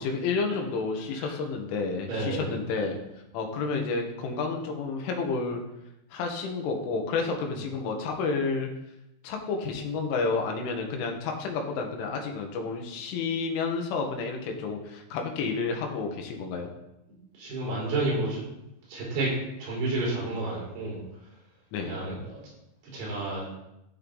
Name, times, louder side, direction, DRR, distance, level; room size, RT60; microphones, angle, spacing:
voice 1, 0.0-3.0 3.3-5.6 6.1-8.7 9.2-16.7 21.7-22.0, left 4 dB, 80° left, 2 dB, 4.0 m, -30 dB
voice 2, 2.1-2.5 17.4-18.4 18.9-19.3 19.6-21.0 21.9-22.4 22.8-23.5, right 2 dB, 55° right, -5 dB, 6.1 m, -30 dB
14.0 x 6.6 x 4.0 m, 0.87 s
omnidirectional pair, 5.5 m